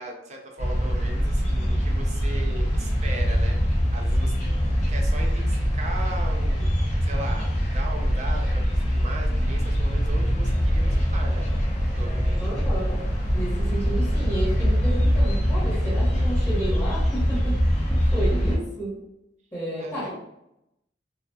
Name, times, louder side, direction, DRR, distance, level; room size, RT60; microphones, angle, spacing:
voice 1, 0.0-3.6 3.9-4.4 4.9-6.7 7.0-11.6 11.9-12.5 18.5-18.6 19.8-20.1, right 2 dB, 40° right, 1 dB, 0.5 m, -38 dB
sound 1, 0.6-18.6, equal, 40° left, 0.6 m, -23 dB
voice 2, 12.4-13.0 13.3-18.9 19.5-20.1, right 1 dB, 10° left, -9 dB, 1.1 m, -32 dB
2.8 x 2.3 x 2.2 m, 0.85 s
head